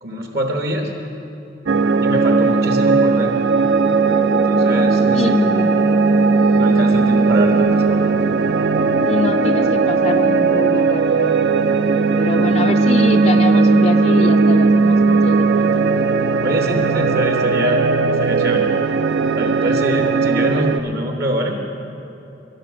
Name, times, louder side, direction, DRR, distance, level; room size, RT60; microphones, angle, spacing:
voice 1, 0.0-0.9 2.0-3.4 4.4-5.4 6.5-8.1 16.4-18.7 19.4-21.6, equal, 60° right, 3 dB, 1.1 m, -24 dB
sound 1, 1.7-20.8, right 4 dB, 85° right, 0.5 m, -16 dB
voice 2, 5.1-5.8 9.0-11.4 12.2-15.9, left 3 dB, 35° left, 5 dB, 0.3 m, -25 dB
13.5 x 11.0 x 6.2 m, 2.9 s
head